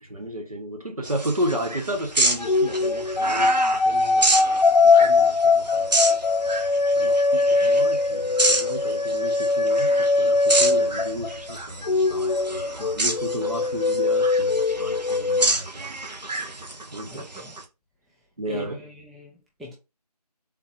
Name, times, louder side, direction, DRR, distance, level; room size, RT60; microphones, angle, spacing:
voice 1, 0.0-3.6 3.8-4.4 4.9-6.2 6.9-16.0 16.9-17.2 18.4-18.8, equal, 60° right, 1.0 m, -33 dB
sound 1, 1.0-17.6, right 2 dB, 85° right, 0.7 m, -29 dB
sound 2, 2.4-11.5 11.8-15.5, left 3 dB, 80° left, 0.4 m, -21 dB
voice 2, 17.0-17.6 18.5-19.7, equal, ahead, 0.3 m, -40 dB
3.6 x 2.4 x 2.9 m
figure-of-eight pair, 170°, 21 cm